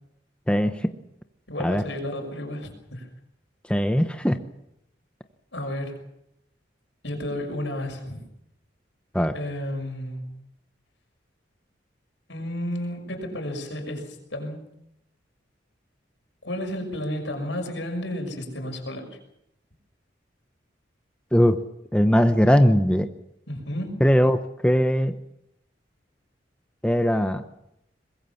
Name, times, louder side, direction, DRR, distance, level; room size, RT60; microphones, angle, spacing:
voice 1, 0.5-0.9 1.6-1.8 3.7-4.4 9.1-9.3 21.3-21.6 21.9-23.1 24.0-25.1 26.8-27.4, equal, 5° left, 7 dB, 0.9 m, -20 dB
voice 2, 1.5-3.1 5.5-6.0 7.0-8.2 9.3-10.2 12.3-14.7 16.4-19.2 23.5-24.0, left 1 dB, 75° left, 4 dB, 6.1 m, -32 dB
23.5 x 21.5 x 7.1 m, 0.80 s
head